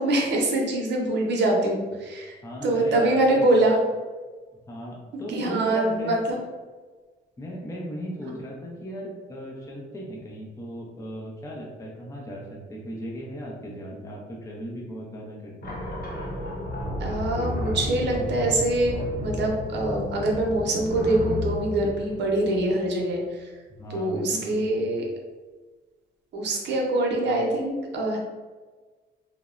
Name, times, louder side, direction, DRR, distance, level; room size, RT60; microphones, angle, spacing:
voice 1, 0.0-2.3 2.6-3.8 5.3-6.4 17.0-19.0 19.2-23.5 23.9-25.0 26.3-28.2, right 2 dB, 60° right, 0 dB, 0.7 m, -24 dB
voice 2, 2.4-3.2 4.7-6.1 7.4-15.8 23.7-24.8, equal, 15° left, -3 dB, 0.6 m, -37 dB
sound 1, 15.6-23.0, left 1 dB, 50° left, 0.7 m, -32 dB
2.9 x 2.0 x 2.4 m, 1.4 s
cardioid pair, 90°, 20 cm